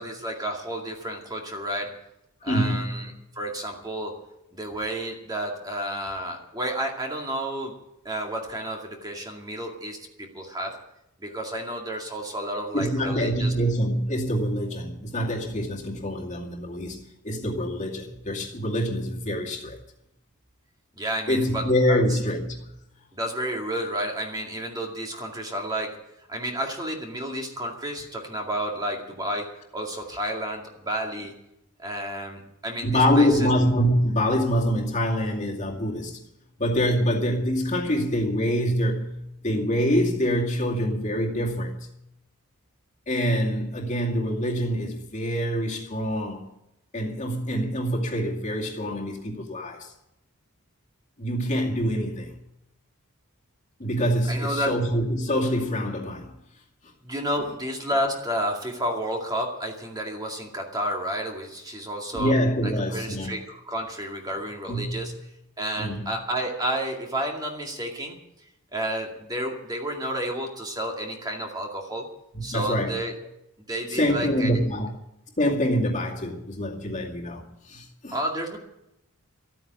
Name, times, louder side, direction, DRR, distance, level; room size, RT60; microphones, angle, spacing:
voice 1, 0.0-2.0 2.4-4.2 4.5-7.7 8.0-10.8 11.2-13.5 21.0-22.2 23.1-26.0 26.3-31.3 31.8-33.5 54.3-54.7 57.0-62.3 62.6-65.1 65.6-68.2 68.7-72.1 72.4-73.2 73.7-74.6 78.1-78.6, right 1 dB, 20° right, 2.2 m, -31 dB
voice 2, 2.4-3.0 12.7-19.8 21.3-22.7 32.8-36.2 36.6-41.9 43.1-46.5 46.9-49.9 51.2-52.3 53.8-56.3 62.1-63.3 64.7-65.1 65.8-66.1 72.3-73.0 73.9-74.9 75.4-78.2, equal, 35° left, 2.3 m, -25 dB
13.5 x 9.3 x 9.4 m
head